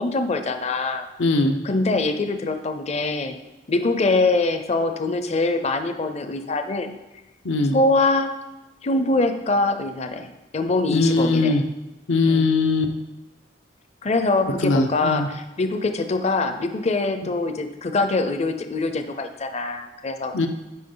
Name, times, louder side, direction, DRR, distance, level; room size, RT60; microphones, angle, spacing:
voice 1, 0.0-1.1 1.6-3.4 3.7-6.9 7.7-8.3 8.8-11.6 12.3-12.5 14.0-20.3, left 3 dB, 35° left, 8 dB, 0.5 m, -23 dB
voice 2, 1.2-1.6 7.4-7.7 10.9-11.6 12.1-12.9 14.6-15.3 20.3-20.5, left 3 dB, 90° left, 5 dB, 0.8 m, -20 dB
9.3 x 5.0 x 3.9 m, 1.0 s
head